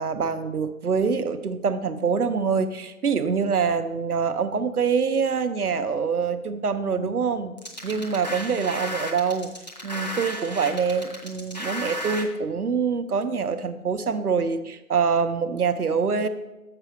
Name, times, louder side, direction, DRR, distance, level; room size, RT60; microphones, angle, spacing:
voice 1, 0.0-7.5 7.8-9.5 9.8-16.3, right 5 dB, 90° right, 10 dB, 0.7 m, -25 dB
sound 1, 7.6-12.2, equal, 30° left, 0.7 m, -34 dB
6.8 x 4.8 x 5.8 m, 1.0 s
figure-of-eight pair, 160°, 44 cm